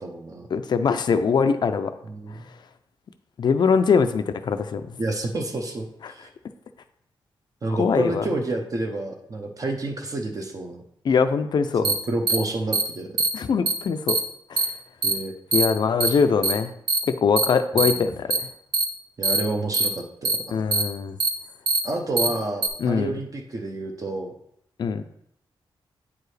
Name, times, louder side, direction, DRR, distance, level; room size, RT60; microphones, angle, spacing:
voice 1, 0.0-0.5 2.0-2.5 5.0-6.3 7.6-10.8 11.8-13.1 15.0-15.3 16.1-16.2 17.8-18.1 19.2-20.4 21.8-24.3, right 2 dB, 40° right, 2 dB, 0.7 m, -29 dB
voice 2, 0.5-1.9 3.4-4.8 6.0-6.1 7.7-8.3 11.0-11.9 13.3-14.2 14.5-14.7 15.5-16.7 17.2-18.4 20.5-21.2 22.8-23.2 24.8-25.0, left 5 dB, 55° left, 9 dB, 0.4 m, -22 dB
sound 1, 11.8-11.9 12.3-12.4 12.7-12.8 13.2-13.3 13.7-13.8 14.1-14.2 14.6-14.7 15.0-15.1 15.5-15.7 16.0-16.1 16.4-16.5 16.9-17.0 17.4-17.5 17.8-17.9 18.3-18.4 18.7-18.8 19.2-19.4 19.7-19.9 20.3-20.4 20.7-20.8 21.2-21.3 21.7-21.8 22.2-22.3 22.6-22.7, right 3 dB, 70° right, 1.0 m, -21 dB
8.6 x 4.7 x 3.3 m, 0.73 s
wide cardioid pair, 140°, 9 cm